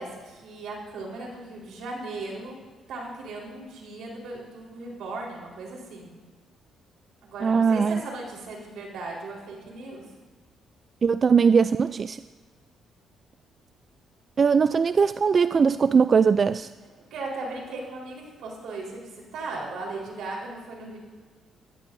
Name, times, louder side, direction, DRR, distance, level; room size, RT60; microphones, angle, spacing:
voice 1, 0.0-2.6 2.9-6.2 7.2-10.0 17.1-21.0, right 2 dB, 80° right, -2 dB, 4.0 m, -37 dB
voice 2, 7.4-8.0 11.0-12.2 14.4-16.7, right 5 dB, 45° right, 13 dB, 0.3 m, -20 dB
20.0 x 14.0 x 2.6 m, 1.4 s
cardioid pair, 90°, 0 cm